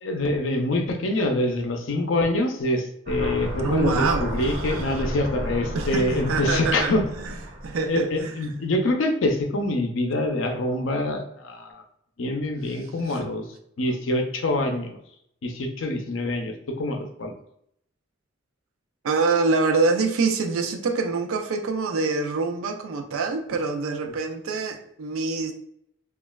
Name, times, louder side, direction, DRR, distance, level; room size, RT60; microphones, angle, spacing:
voice 1, 0.0-7.1 7.9-11.8 12.2-13.4 13.8-14.9 15.4-17.3, left 1 dB, 70° left, 4 dB, 0.5 m, -25 dB
sound 1, 3.1-8.0, right 1 dB, 40° right, 0.6 m, -32 dB
voice 2, 3.6-4.8 5.7-7.3 7.6-8.3 13.1-13.2 19.0-25.5, right 4 dB, 85° right, 4 dB, 0.4 m, -25 dB
3.0 x 2.3 x 2.2 m, 0.72 s
head